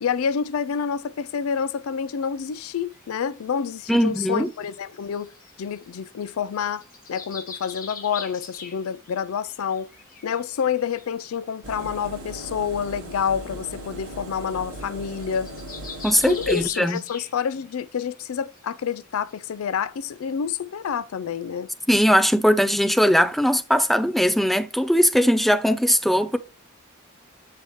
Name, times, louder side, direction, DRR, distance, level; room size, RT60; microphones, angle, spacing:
voice 1, 0.0-5.3 5.6-6.8 7.1-9.9 10.2-15.5 16.3-21.7, left 7 dB, 75° left, 0.4 m, -28 dB
sound 1, 2.9-3.0 3.7-6.1 6.5-9.2 9.5-11.1 11.5-11.6 11.8-12.1 13.1-13.2 13.4-13.5 13.8-14.0 14.4-14.5 14.8-17.7 18.0-18.2 18.6-18.7 19.3-19.4, left 5 dB, 40° left, 1.3 m, -41 dB
voice 2, 3.9-4.5 16.0-17.0 21.9-26.4, equal, ahead, 0.4 m, -20 dB
Engine, 11.6-16.7, right 1 dB, 75° right, 1.3 m, -38 dB
7.2 x 5.6 x 3.1 m
head